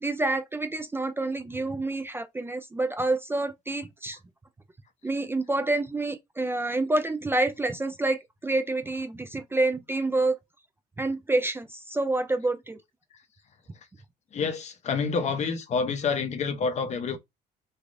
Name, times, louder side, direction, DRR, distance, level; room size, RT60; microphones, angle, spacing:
voice 1, 0.0-4.2 5.0-10.4 11.0-12.8, right 2 dB, 15° right, 0.3 m, -28 dB
voice 2, 14.3-17.2, left 5 dB, 40° left, 0.6 m, -28 dB
3.2 x 2.4 x 2.5 m
cardioid pair, 110°, 17 cm